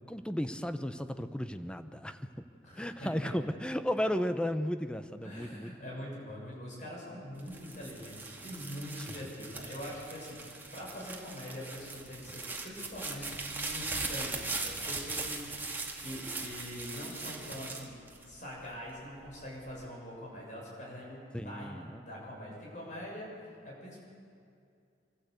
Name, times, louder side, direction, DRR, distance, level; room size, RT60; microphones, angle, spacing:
voice 1, 0.1-2.5 2.8-5.7 21.3-22.0, equal, 5° left, 9 dB, 0.7 m, -34 dB
voice 2, 2.6-3.3 5.2-18.0 18.3-23.3 23.6-24.0, equal, 45° left, -3 dB, 7.0 m, -44 dB
sound 1, 7.4-18.7 19.3-19.8, right 3 dB, 10° right, 2.0 m, -40 dB
25.0 x 14.5 x 8.1 m, 2.4 s
head